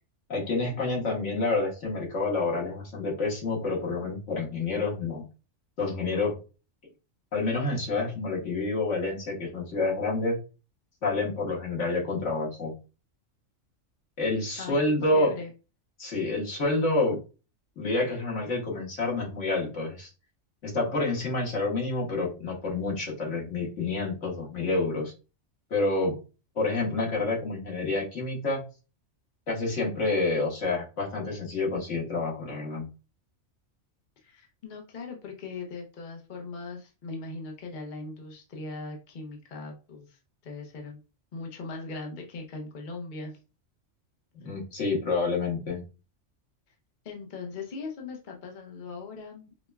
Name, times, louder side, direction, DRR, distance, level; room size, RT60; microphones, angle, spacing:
voice 1, 0.3-5.2 5.8-6.4 7.3-10.4 11.0-12.7 14.2-15.3 16.0-17.2 17.8-20.1 20.6-25.1 25.7-26.2 26.5-28.6 29.5-32.8 44.3-45.8, left 3 dB, 70° left, -3 dB, 1.6 m, -28 dB
voice 2, 15.1-15.5 34.2-41.0 41.3-43.3 47.0-49.7, left 3 dB, 45° left, 1 dB, 0.7 m, -40 dB
5.0 x 2.2 x 2.2 m, 0.32 s
omnidirectional pair, 1.3 m